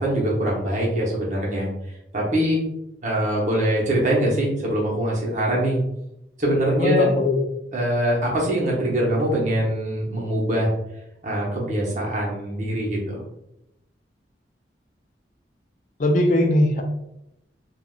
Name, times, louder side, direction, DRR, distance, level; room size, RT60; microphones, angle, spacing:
voice 1, 0.0-1.7 2.1-2.6 3.0-5.8 6.4-7.0 7.7-10.7 11.2-13.2, right 1 dB, 40° right, -4 dB, 0.9 m, -23 dB
voice 2, 6.8-7.4 16.0-16.8, left 1 dB, 45° left, 3 dB, 0.4 m, -19 dB
3.4 x 2.4 x 2.3 m, 0.84 s
head